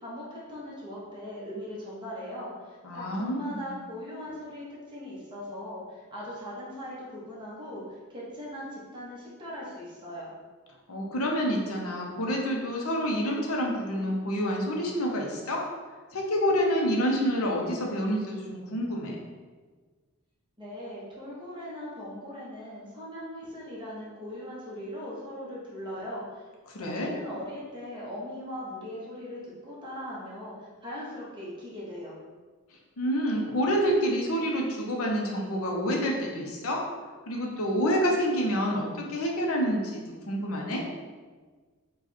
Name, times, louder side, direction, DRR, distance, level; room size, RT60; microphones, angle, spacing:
voice 1, 0.0-10.3 20.6-26.4 26.8-32.2, left 1 dB, 20° right, -6 dB, 1.2 m, -39 dB
voice 2, 2.8-3.7 10.9-15.6 16.1-19.2 26.7-27.1 33.0-36.8 37.3-40.8, equal, 70° left, -1 dB, 0.8 m, -28 dB
4.7 x 2.4 x 4.3 m, 1.4 s
head